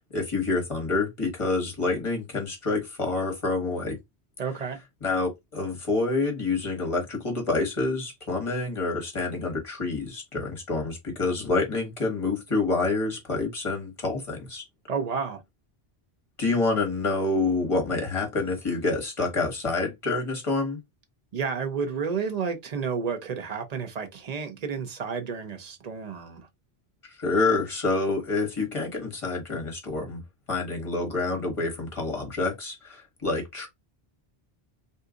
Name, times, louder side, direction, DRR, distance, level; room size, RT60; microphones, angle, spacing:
voice 1, 0.1-4.0 5.0-14.6 16.4-20.8 27.0-30.2 30.5-33.7, left 3 dB, 30° left, 1.1 m, -27 dB
voice 2, 4.4-4.8 14.9-15.4 21.3-26.5, right 6 dB, 45° right, 0.7 m, -31 dB
2.7 x 2.3 x 3.6 m
omnidirectional pair, 1.1 m